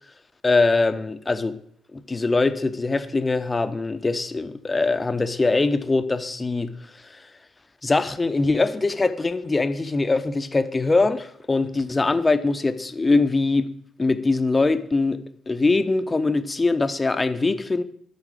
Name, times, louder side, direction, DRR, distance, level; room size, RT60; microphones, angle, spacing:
voice 1, 0.4-1.6 1.9-7.3 7.8-13.7 14.0-17.8, left 3 dB, 25° left, 10 dB, 0.8 m, -22 dB
11.0 x 4.1 x 5.0 m, 0.66 s
hypercardioid pair, 50°, 0 cm